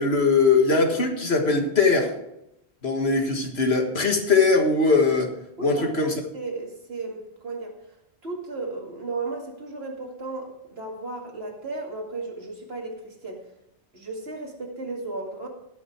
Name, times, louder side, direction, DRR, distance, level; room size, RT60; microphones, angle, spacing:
voice 1, 0.0-2.1 2.8-5.3 5.6-6.1, left 4 dB, 85° left, 3 dB, 1.9 m, -21 dB
voice 2, 5.6-7.7 8.2-13.4 13.9-15.5, right 3 dB, 85° right, 0 dB, 2.6 m, -34 dB
18.0 x 6.2 x 4.6 m, 0.84 s
omnidirectional pair, 1.0 m